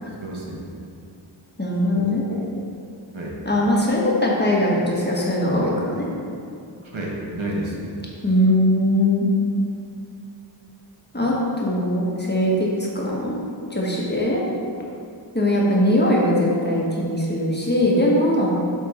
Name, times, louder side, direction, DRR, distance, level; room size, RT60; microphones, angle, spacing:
voice 1, 0.2-0.6 1.9-2.5 3.1-3.4 6.8-7.9, right 1 dB, 75° right, -3 dB, 1.3 m, -31 dB
voice 2, 1.6-2.2 3.4-6.1 8.2-9.3 11.1-12.7 12.9-13.4 13.7-14.4 15.3-18.5, left 1 dB, 20° left, -4 dB, 1.3 m, -20 dB
7.6 x 3.6 x 4.3 m, 2.5 s
wide cardioid pair, 50°, 47 cm